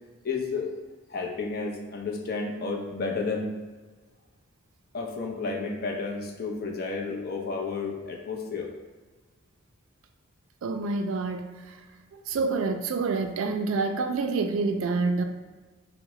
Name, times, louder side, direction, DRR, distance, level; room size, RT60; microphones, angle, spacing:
voice 1, 0.2-0.7 1.1-3.5 4.9-8.7, left 4 dB, 45° left, 0 dB, 0.5 m, -31 dB
voice 2, 10.6-11.8 12.1-15.2, right 4 dB, 75° right, 6 dB, 0.3 m, -27 dB
4.6 x 2.1 x 3.0 m, 1.3 s
head